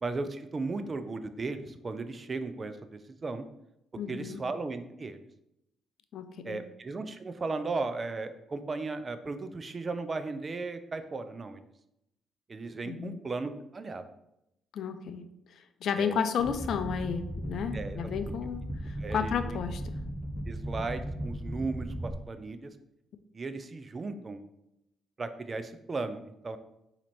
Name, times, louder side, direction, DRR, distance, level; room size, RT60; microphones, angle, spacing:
voice 1, 0.0-3.5 4.1-5.2 6.4-11.6 12.5-14.0 16.0-16.2 17.7-18.1 19.0-19.6 20.5-22.7 23.3-24.4 25.2-26.6, right 3 dB, 40° right, 10 dB, 0.5 m, -36 dB
voice 2, 4.0-4.4 6.1-6.6 12.8-13.2 14.7-15.2 15.8-19.8, left 7 dB, 65° left, 9 dB, 0.4 m, -32 dB
sound 1, 16.4-22.1, equal, 5° right, 0.8 m, -37 dB
4.3 x 2.9 x 4.2 m, 0.83 s
supercardioid pair, 60°, 0 cm